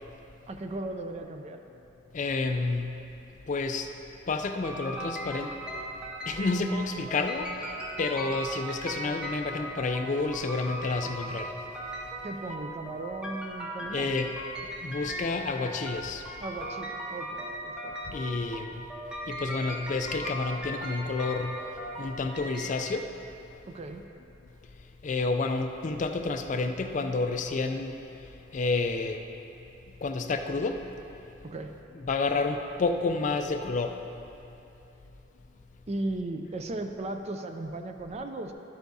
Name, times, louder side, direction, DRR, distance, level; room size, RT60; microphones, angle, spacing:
voice 1, 0.5-1.6 12.2-14.2 16.4-18.0 23.7-24.0 31.4-31.8 35.9-38.5, right 2 dB, 30° right, 6 dB, 0.4 m, -36 dB
voice 2, 2.1-3.0 3.5-3.9 4.3-5.5 6.2-11.5 13.9-14.4 14.6-16.3 18.1-18.8 19.3-21.7 22.0-23.1 25.0-28.0 28.5-29.3 30.0-30.8 32.0-34.0, left 3 dB, 35° left, 6 dB, 0.4 m, -30 dB
sound 1, 4.6-22.7, equal, 5° right, 1.0 m, -38 dB
12.0 x 8.1 x 2.7 m, 3.0 s
head